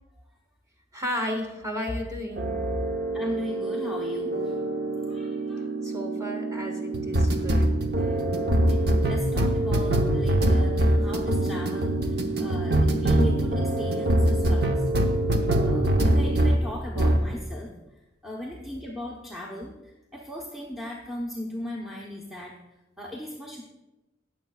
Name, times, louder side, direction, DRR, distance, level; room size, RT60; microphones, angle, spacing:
voice 1, 0.9-2.8 5.8-7.7, left 1 dB, 15° right, 1 dB, 1.6 m, -33 dB
sound 1, 2.4-16.6 17.0-17.3, right 1 dB, 55° right, 0.9 m, -24 dB
voice 2, 3.1-4.5 5.1-5.7 8.0-8.2 8.6-14.8 15.6-17.7 18.2-22.6 23.0-23.6, left 1 dB, ahead, -3 dB, 0.9 m, -37 dB
18.5 x 7.4 x 2.3 m, 1.0 s
head